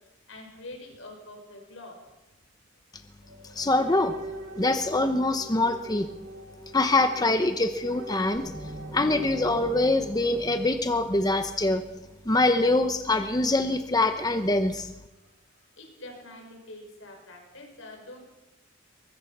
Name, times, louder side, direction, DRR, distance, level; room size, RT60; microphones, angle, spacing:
voice 1, 0.3-2.0 15.1-18.2, left 2 dB, 75° left, 3 dB, 6.4 m, -45 dB
Ambient Piano Loop by Peng Punker, 3.2-9.7, right 1 dB, 90° right, 6.7 m, -42 dB
voice 2, 3.5-4.1 4.6-6.1 6.7-8.4 8.9-11.8 12.3-14.9, left 2 dB, 20° left, 8 dB, 0.9 m, -24 dB
sound 1, 8.3-12.1, right 1 dB, 5° right, 7.1 m, -43 dB
23.5 x 21.0 x 6.1 m, 0.99 s
head